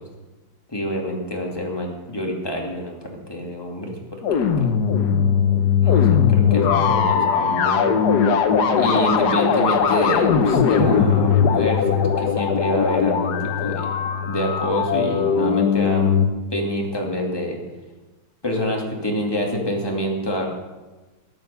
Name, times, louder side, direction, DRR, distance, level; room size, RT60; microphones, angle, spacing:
voice 1, 0.7-3.9 4.3-4.6 5.8-7.9 8.7-13.9 14.3-16.2 16.5-17.6 18.4-20.5, equal, 10° left, 0 dB, 2.4 m, -26 dB
sound 1, 4.2-16.3, left 7 dB, 60° left, 1.4 m, -19 dB
14.5 x 9.2 x 6.9 m, 1.2 s
omnidirectional pair, 2.1 m